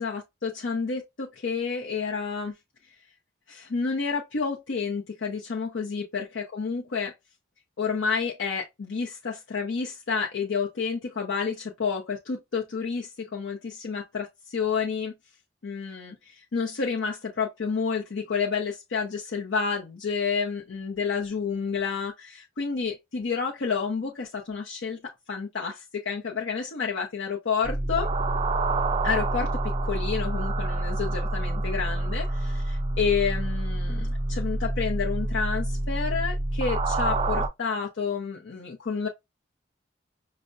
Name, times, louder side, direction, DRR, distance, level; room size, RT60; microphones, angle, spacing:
voice 1, 0.0-2.5 3.5-7.1 7.8-15.1 15.6-28.1 29.0-29.5 29.8-39.1, left 5 dB, 85° left, 0.6 m, -30 dB
sound 1, 27.6-37.5, right 2 dB, 30° right, 0.3 m, -27 dB
5.3 x 2.1 x 2.4 m
head